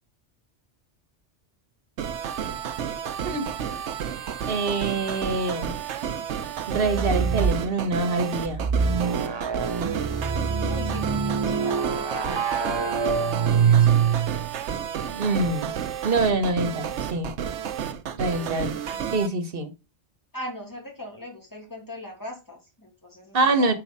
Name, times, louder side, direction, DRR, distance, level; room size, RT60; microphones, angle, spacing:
sound 1, 2.0-19.3, right 8 dB, 80° right, 1.0 m, -31 dB
voice 1, 4.5-5.7 6.7-8.6 15.1-15.7 16.0-17.3 18.1-18.7 19.1-19.7 23.3-23.7, right 3 dB, 55° right, 1.4 m, -25 dB
sound 2, 6.7-7.7 8.5-14.5, right 6 dB, 35° right, 0.4 m, -24 dB
voice 2, 10.7-14.3 20.3-23.7, left 1 dB, 15° left, 2.3 m, -40 dB
5.5 x 4.8 x 5.5 m
omnidirectional pair, 1.2 m